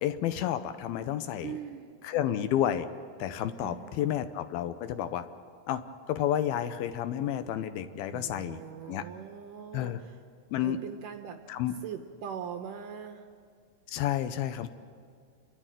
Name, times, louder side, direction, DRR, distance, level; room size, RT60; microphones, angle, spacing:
voice 1, 0.0-1.6 2.0-2.9 3.2-5.3 5.7-8.6 8.9-9.0 9.7-10.0 10.5-10.8 11.5-11.7 13.9-14.7, left 11 dB, 75° left, 10 dB, 2.5 m, -30 dB
voice 2, 1.4-2.0 3.6-4.2 8.1-10.2 10.6-11.4 11.8-13.3, right 8 dB, 75° right, 6 dB, 2.1 m, -41 dB
29.0 x 12.5 x 9.0 m, 2.1 s
omnidirectional pair, 4.6 m